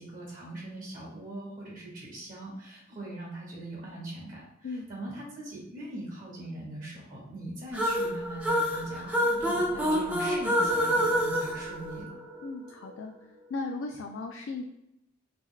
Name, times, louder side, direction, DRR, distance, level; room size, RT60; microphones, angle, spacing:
voice 1, 0.0-12.1, right 1 dB, 45° right, -4 dB, 0.8 m, -41 dB
sound 1, 7.7-12.5, equal, 5° right, 0.5 m, -27 dB
voice 2, 12.4-13.1 13.5-14.6, left 3 dB, 75° left, 3 dB, 0.3 m, -36 dB
2.9 x 2.2 x 3.6 m, 0.80 s
head